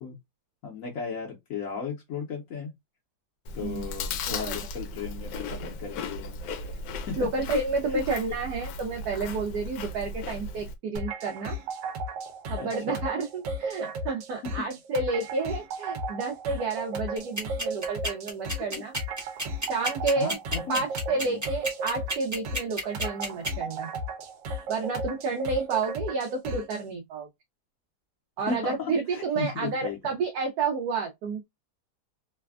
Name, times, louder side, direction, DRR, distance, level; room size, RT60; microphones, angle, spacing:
voice 1, 0.6-2.7 3.5-6.4 7.1-7.3 7.9-8.0 12.6-13.0 18.7-18.8 20.2-21.4 28.5-30.1, left 6 dB, 65° left, 1.0 m, -36 dB
Chewing mastication, 3.5-10.8, left 3 dB, 90° left, 1.2 m, -36 dB
voice 2, 4.3-4.6 7.2-11.6 12.5-18.9 19.6-20.4 20.7-23.9 24.7-27.3 28.4-31.4, right 4 dB, 70° right, 1.1 m, -30 dB
sound 1, 11.0-26.8, right 1 dB, 90° right, 1.3 m, -35 dB
sound 2, 17.1-23.5, right 1 dB, 20° right, 0.5 m, -30 dB
3.3 x 2.1 x 2.3 m
omnidirectional pair, 1.8 m